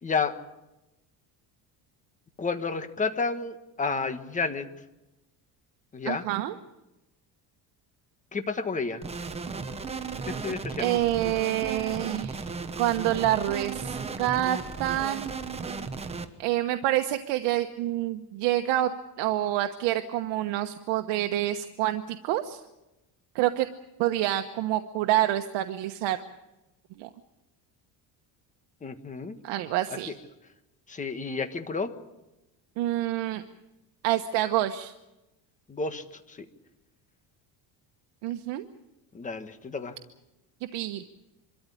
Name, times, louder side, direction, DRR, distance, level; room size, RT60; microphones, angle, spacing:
voice 1, 0.0-0.4 2.4-4.7 5.9-6.2 8.3-9.0 10.2-10.9 28.8-29.3 30.9-31.9 35.7-36.4 39.1-39.9, left 4 dB, 20° left, 9 dB, 1.4 m, -31 dB
voice 2, 6.0-6.6 10.8-15.3 16.4-18.9 19.2-22.6 23.3-23.7 24.0-26.2 27.0-27.1 29.4-30.1 32.8-33.4 34.0-34.9 38.2-38.6 40.7-41.0, right 14 dB, 80° right, 7 dB, 1.2 m, -27 dB
sound 1, 9.0-16.3, right 4 dB, 15° right, 1.1 m, -35 dB
25.0 x 13.5 x 10.0 m, 0.98 s
cardioid pair, 165°, 42 cm